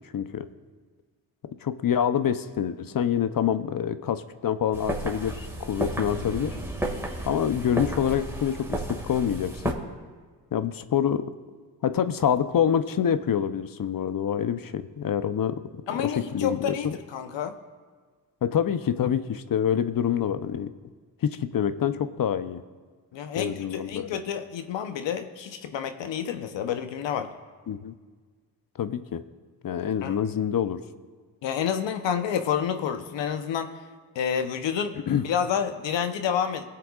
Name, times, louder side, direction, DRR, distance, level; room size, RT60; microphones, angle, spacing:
voice 1, 0.1-0.5 1.6-6.6 7.3-9.8 10.5-11.2 11.8-15.6 16.0-16.9 18.4-20.7 21.2-22.6 23.4-24.1 27.7-27.9 28.8-29.2 29.6-30.8 35.1-35.2, left 8 dB, 50° left, 12 dB, 0.7 m, -26 dB
sound 1, 4.7-9.7, right 1 dB, 5° right, 2.0 m, -32 dB
voice 2, 15.9-17.5 23.1-27.3 30.0-30.2 31.4-33.7 34.1-34.9 35.2-36.6, left 8 dB, 75° left, 8 dB, 0.9 m, -29 dB
21.0 x 7.7 x 2.4 m, 1.5 s
supercardioid pair, 50°, 44 cm